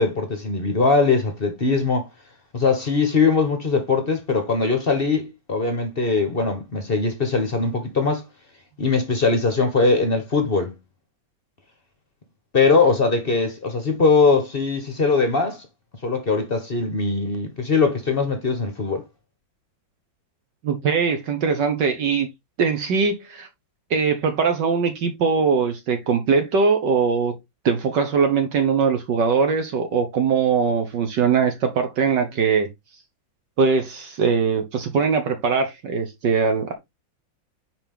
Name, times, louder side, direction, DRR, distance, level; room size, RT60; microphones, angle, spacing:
voice 1, 0.0-2.1 2.5-8.2 8.8-10.7 12.5-15.6 16.0-19.0, left 4 dB, 35° left, 1.0 m, -21 dB
voice 2, 20.6-22.3 22.6-23.5 23.9-27.3 27.6-32.7 33.6-36.7, right 5 dB, 65° right, 1.6 m, -21 dB
5.1 x 5.0 x 3.6 m
omnidirectional pair, 2.1 m